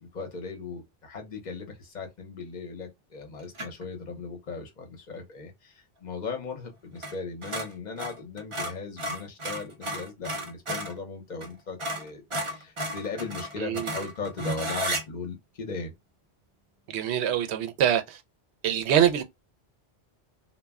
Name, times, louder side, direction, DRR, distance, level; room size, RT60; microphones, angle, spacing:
voice 1, 0.0-15.9, left 4 dB, 45° left, 0.8 m, -38 dB
sound 1, 3.5-3.9 7.0-7.2 7.4-11.0 11.4-11.5 11.8-15.0, right 1 dB, 35° right, 0.6 m, -33 dB
voice 2, 13.6-13.9 16.9-18.2 18.6-19.2, right 9 dB, 85° right, 0.8 m, -24 dB
2.2 x 2.1 x 3.5 m
omnidirectional pair, 1.1 m